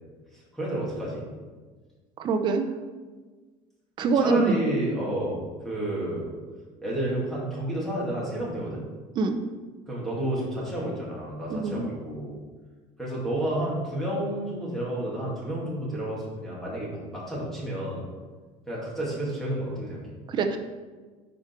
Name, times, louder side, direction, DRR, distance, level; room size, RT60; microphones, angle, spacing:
voice 1, 0.3-1.2 4.1-6.3 6.8-8.8 9.9-12.4 13.0-18.0 18.7-20.2, right 1 dB, ahead, -6 dB, 2.2 m, -30 dB
voice 2, 2.2-2.7 4.0-4.4 9.2-9.4 11.5-11.8 20.3-20.6, right 4 dB, 35° right, 7 dB, 0.7 m, -24 dB
9.3 x 5.1 x 4.5 m, 1.4 s
cardioid pair, 175°, 14 cm